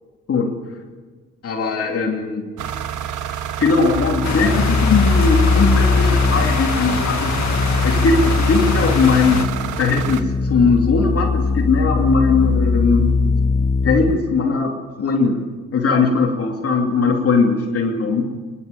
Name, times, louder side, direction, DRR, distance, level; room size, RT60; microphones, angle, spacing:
voice 1, 0.3-0.6 1.4-2.5 3.6-7.3 7.8-9.5 9.8-13.2 13.8-15.4 15.7-18.3, left 4 dB, 50° left, 1 dB, 2.9 m, -19 dB
sound 1, 2.6-10.2, right 9 dB, 85° right, 1.3 m, -28 dB
sound 2, 3.9-14.2, left 4 dB, 25° left, 0.9 m, -20 dB
sound 3, 4.2-9.5, left 7 dB, 65° left, 2.1 m, -26 dB
29.5 x 11.5 x 8.1 m, 1.4 s
cardioid pair, 90°, 30 cm